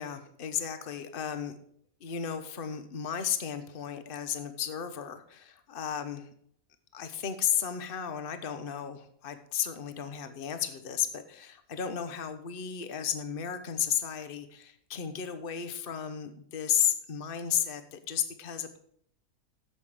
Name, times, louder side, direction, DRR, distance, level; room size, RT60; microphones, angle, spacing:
voice 1, 0.0-1.5 2.0-6.3 6.9-18.8, left 8 dB, 45° left, 9 dB, 1.1 m, -33 dB
9.9 x 7.7 x 4.9 m, 0.66 s
omnidirectional pair, 1.5 m